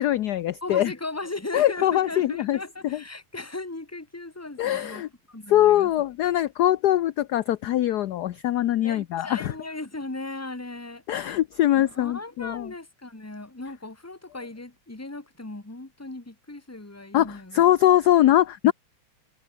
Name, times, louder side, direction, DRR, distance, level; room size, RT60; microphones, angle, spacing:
voice 1, 0.0-0.9 1.5-2.6 2.8-3.0 4.6-5.1 5.5-9.5 11.1-12.7 17.1-18.7, left 13 dB, 65° left, 1.0 m, -22 dB
voice 2, 0.6-5.9 8.8-11.0 11.7-17.6 18.6-18.7, left 2 dB, 5° left, 1.8 m, -37 dB
omnidirectional pair, 2.4 m